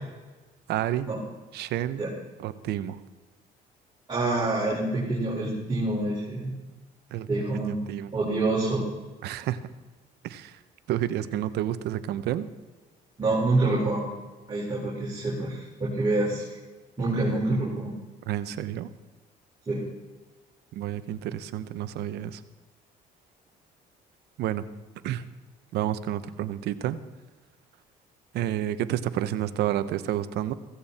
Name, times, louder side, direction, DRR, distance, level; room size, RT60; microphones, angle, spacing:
voice 1, 0.7-1.1 1.5-2.0 2.4-3.0 7.1-7.3 7.7-8.1 9.2-9.6 10.2-10.6 10.9-12.5 18.3-18.9 20.7-22.4 24.4-24.6 25.0-25.2 25.7-27.0 28.3-30.5, right 12 dB, 80° right, 13 dB, 1.0 m, -30 dB
voice 2, 4.1-6.5 7.3-7.8 8.1-8.8 13.2-14.0 14.5-16.5 17.0-17.9 19.7-19.8, right 2 dB, 25° right, -6 dB, 5.2 m, -26 dB
16.0 x 15.5 x 4.3 m, 1.2 s
cardioid pair, 110°, 17 cm